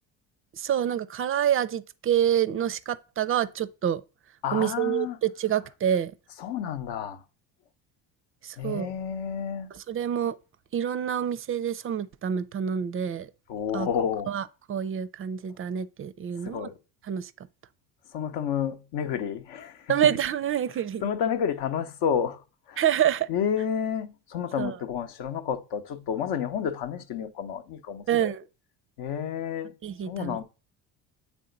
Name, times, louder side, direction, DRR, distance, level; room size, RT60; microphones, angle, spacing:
voice 1, 0.6-4.0 4.5-6.1 8.4-8.9 9.7-10.4 10.7-13.3 13.7-13.9 14.3-16.7 17.1-17.3 19.9-21.0 22.8-23.3 24.6-24.8 28.1-28.4 29.8-30.4, right 9 dB, 30° right, 0.4 m, -27 dB
voice 2, 4.4-5.2 6.4-7.2 8.6-9.7 13.5-14.3 16.4-16.8 18.1-20.0 21.0-22.4 22.7-22.8 23.3-28.3 29.0-29.7 30.0-30.4, left 8 dB, 60° left, 0.9 m, -30 dB
7.6 x 3.5 x 3.8 m
hypercardioid pair, 65°, 47 cm